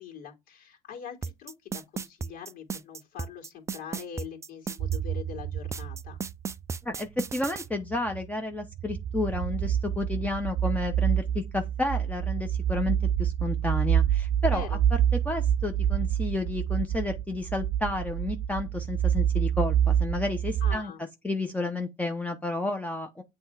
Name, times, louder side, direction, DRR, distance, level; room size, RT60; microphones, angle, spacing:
voice 1, 0.0-6.2 14.5-14.8 20.6-21.0, left 8 dB, 60° left, 2.5 m, -43 dB
sound 1, 1.2-5.0 5.7-7.7, right 5 dB, 15° right, 0.3 m, -34 dB
sound 2, 4.8-6.5 7.7-8.3 8.7-20.8, right 9 dB, 55° right, 0.7 m, -27 dB
voice 2, 6.8-20.9 21.2-23.2, left 2 dB, 10° left, 0.7 m, -31 dB
7.7 x 3.3 x 4.7 m
cardioid pair, 120°, 18 cm